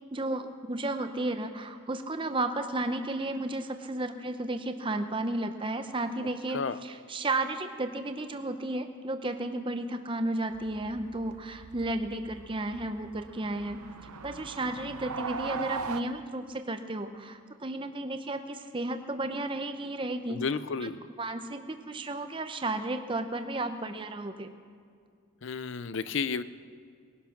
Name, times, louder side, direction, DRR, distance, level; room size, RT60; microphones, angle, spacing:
voice 1, 0.1-13.8 14.2-20.4 20.8-20.9 21.2-24.5, right 2 dB, 25° right, 7 dB, 0.7 m, -33 dB
sound 1, 10.5-16.0, right 5 dB, 90° right, 0.7 m, -40 dB
voice 2, 20.3-21.0 25.4-26.4, left 5 dB, 55° left, 14 dB, 0.5 m, -32 dB
20.5 x 11.0 x 5.9 m, 2.2 s
head